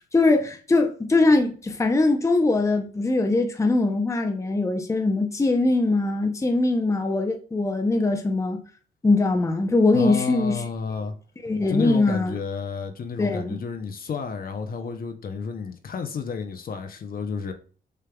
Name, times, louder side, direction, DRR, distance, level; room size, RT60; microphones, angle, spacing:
voice 1, 0.1-8.6 9.0-10.6 11.4-12.4 13.2-13.6, left 2 dB, 15° left, 0.7 m, -22 dB
voice 2, 9.9-11.1 11.7-17.5, left 5 dB, 45° left, 0.7 m, -31 dB
6.7 x 3.3 x 2.3 m
cardioid pair, 90°, 20 cm